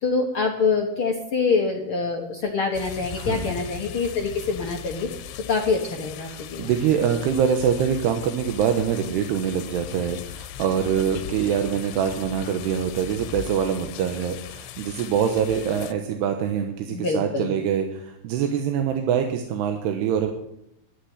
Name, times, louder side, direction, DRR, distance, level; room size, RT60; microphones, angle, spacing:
voice 1, 0.0-5.1 5.5-6.7 16.9-17.5, left 4 dB, 70° left, 1 dB, 1.3 m, -25 dB
sound 1, 2.7-15.9, left 10 dB, 85° left, 2.8 m, -39 dB
voice 2, 3.1-3.6 6.3-20.3, right 8 dB, 85° right, 5 dB, 3.2 m, -24 dB
12.0 x 10.5 x 9.5 m, 0.77 s
omnidirectional pair, 4.6 m